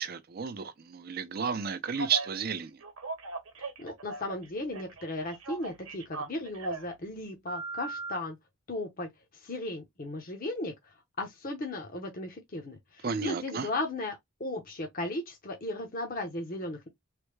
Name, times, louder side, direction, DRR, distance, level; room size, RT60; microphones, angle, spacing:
voice 1, 0.0-2.8 13.0-13.7, right 6 dB, 45° right, 0.5 m, -32 dB
Telephone, 2.0-2.3 2.8-4.5 4.7-6.9 7.5-8.2, right 2 dB, 75° right, 0.9 m, -38 dB
voice 2, 3.6-8.4 8.7-16.9, left 2 dB, 40° left, 0.7 m, -36 dB
3.3 x 2.1 x 3.1 m
head